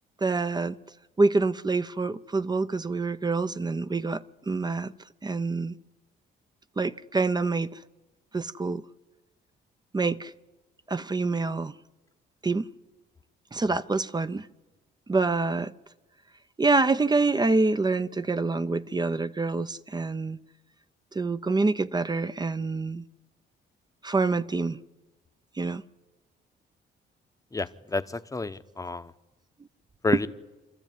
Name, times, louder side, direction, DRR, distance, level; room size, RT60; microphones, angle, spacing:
voice 1, 0.2-0.8 1.2-4.9 5.2-5.7 6.8-7.8 8.3-8.8 9.9-10.3 10.9-11.7 12.4-12.7 13.5-14.5 15.1-15.7 16.6-20.4 21.1-23.0 24.0-24.8 25.6-25.8, right 3 dB, 20° right, 0.7 m, -26 dB
voice 2, 27.5-29.1 30.0-30.3, left 3 dB, 15° left, 0.9 m, -30 dB
26.5 x 13.5 x 9.3 m
cardioid pair, 90°, 20 cm